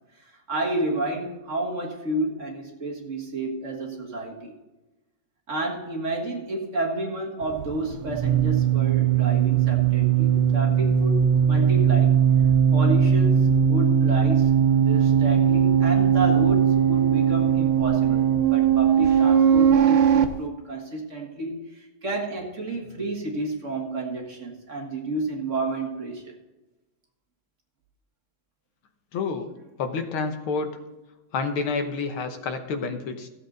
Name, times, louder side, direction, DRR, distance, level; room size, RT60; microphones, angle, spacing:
voice 1, 0.2-4.5 5.5-12.2 12.7-26.3, right 2 dB, 40° right, 0 dB, 1.9 m, -31 dB
sound 1, 7.4-20.3, right 8 dB, 85° right, 1.7 m, -19 dB
voice 2, 29.1-29.5 29.8-30.8 31.3-33.3, left 4 dB, 85° left, 7 dB, 1.9 m, -29 dB
15.0 x 8.0 x 3.9 m, 1.1 s
omnidirectional pair, 2.3 m